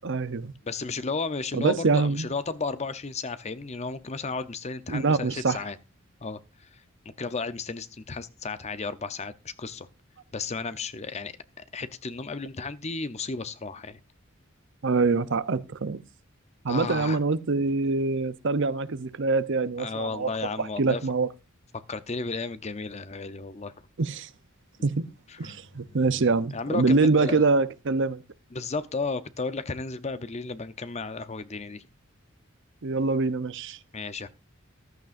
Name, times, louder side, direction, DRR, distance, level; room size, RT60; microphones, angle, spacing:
voice 1, 0.0-0.5 1.5-2.3 4.9-5.6 14.8-16.0 16.6-20.3 20.6-21.3 24.0-24.3 24.8-25.0 25.4-28.2 32.8-33.8, right 3 dB, 60° right, 0.7 m, -25 dB
voice 2, 0.6-5.8 6.2-6.4 7.2-9.9 10.3-14.0 16.7-17.2 19.8-21.0 21.9-23.7 25.3-26.1 26.5-27.4 28.5-31.9 33.9-34.3, left 4 dB, 30° left, 0.7 m, -33 dB
14.0 x 12.0 x 2.6 m
head